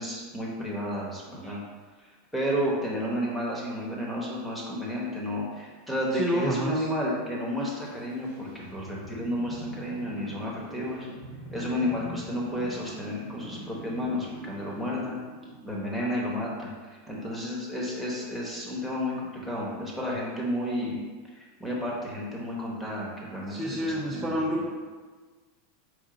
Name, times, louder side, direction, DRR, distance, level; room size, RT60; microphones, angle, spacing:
voice 1, 0.0-1.6 2.3-11.1 11.5-15.2 15.6-19.1 19.4-21.0 21.3-24.3, equal, 5° left, -4 dB, 1.0 m, -31 dB
voice 2, 6.1-6.9 23.5-24.7, equal, 15° right, -4 dB, 0.4 m, -29 dB
sound 1, 7.9-16.0, left 1 dB, 75° left, 1.3 m, -44 dB
4.9 x 2.5 x 3.8 m, 1.4 s
supercardioid pair, 135°, 0 cm